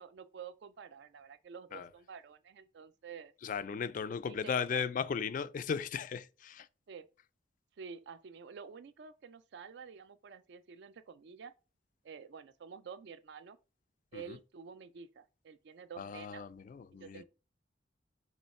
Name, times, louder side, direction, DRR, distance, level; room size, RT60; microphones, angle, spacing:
voice 1, 0.0-3.3 4.2-4.8 6.9-7.1 7.8-11.5 12.0-13.6 14.1-16.4 16.9-17.2, right 6 dB, 60° right, 0.4 m, -49 dB
voice 2, 3.4-6.7 14.1-14.4 16.0-17.2, left 6 dB, 45° left, 0.3 m, -36 dB
4.2 x 3.1 x 4.1 m
head